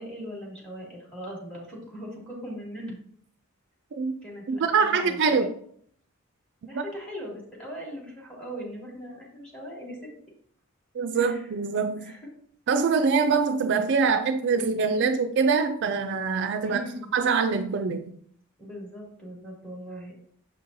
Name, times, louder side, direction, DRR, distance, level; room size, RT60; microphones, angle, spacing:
voice 1, 0.0-3.0 4.2-5.5 6.7-10.1 11.1-11.5 12.0-12.3 12.9-13.0 16.6-17.1 18.6-20.3, equal, 5° left, -3 dB, 2.4 m, -40 dB
voice 2, 4.5-5.5 6.7-6.8 10.9-12.1 12.7-16.8 17.1-18.2, right 5 dB, 55° right, 7 dB, 0.4 m, -24 dB
7.2 x 5.4 x 2.7 m, 0.62 s
head